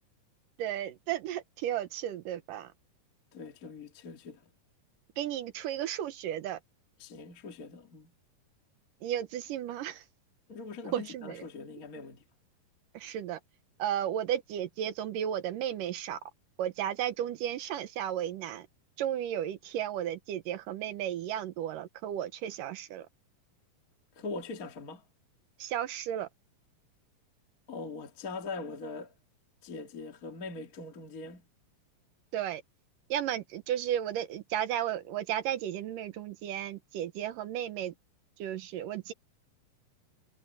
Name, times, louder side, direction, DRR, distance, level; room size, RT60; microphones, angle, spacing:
voice 1, 0.6-2.7 5.2-6.6 9.0-10.0 10.9-11.4 12.9-13.4 13.8-16.2 16.6-18.7 19.0-23.1 25.6-26.3 32.3-32.6 33.1-37.9 38.4-39.1, right 11 dB, 75° right, 2.5 m, -34 dB
voice 2, 3.3-4.4 7.0-8.1 10.5-12.2 24.2-25.0 27.7-29.1 29.6-31.5, left 3 dB, 30° left, 1.9 m, -42 dB
omnidirectional pair, 4.0 m